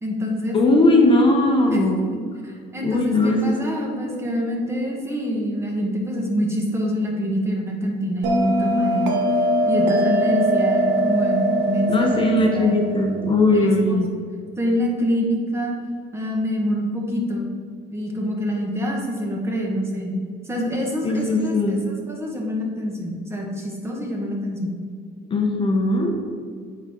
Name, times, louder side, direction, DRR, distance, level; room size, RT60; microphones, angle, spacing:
voice 1, 0.0-0.6 1.7-1.8 2.4-9.2 9.7-12.8 13.5-13.7 14.6-15.7 16.1-17.5 17.9-20.2 20.4-24.7, equal, 15° right, -1 dB, 1.4 m, -26 dB
voice 2, 0.5-2.1 2.8-3.6 11.9-14.1 21.0-21.8 25.3-26.1, left 2 dB, 30° left, 1 dB, 0.9 m, -19 dB
Bell, 8.2-13.3, right 1 dB, 90° right, 1.0 m, -21 dB
8.8 x 4.4 x 3.7 m, 2.1 s
cardioid pair, 110°, 17 cm